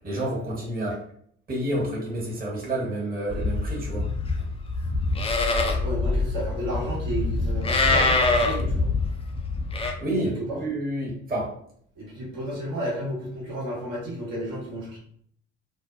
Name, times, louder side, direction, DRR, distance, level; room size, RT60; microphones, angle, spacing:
voice 1, 0.0-1.0 1.5-4.1 10.0-11.5, right 1 dB, 25° right, -4 dB, 1.0 m, -29 dB
Livestock farm animals working animals, 3.3-9.9, left 3 dB, 15° left, 0.4 m, -25 dB
voice 2, 5.8-8.9 10.2-10.6 12.0-15.0, right 1 dB, 60° right, -6 dB, 1.2 m, -32 dB
2.5 x 2.1 x 2.5 m, 0.64 s
figure-of-eight pair, 50°, 37 cm